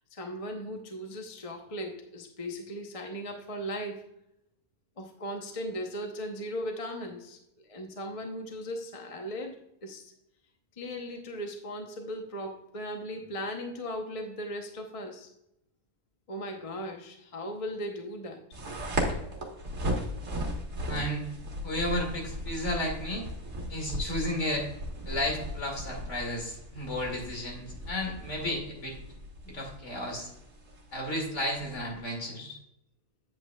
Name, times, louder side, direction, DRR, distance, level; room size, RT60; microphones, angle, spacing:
voice 1, 0.1-4.1 5.0-7.4 7.6-9.6 9.8-10.1 10.8-15.3 16.3-18.4, equal, 30° left, 3 dB, 0.8 m, -37 dB
sound 1, 18.5-32.0, equal, 65° right, 1.9 m, -37 dB
voice 2, 20.9-21.3 21.6-23.2 23.7-24.7 25.0-29.0 29.4-30.3 30.9-32.6, left 1 dB, 55° left, 0 dB, 2.6 m, -33 dB
9.0 x 7.8 x 2.3 m, 0.79 s
omnidirectional pair, 1.5 m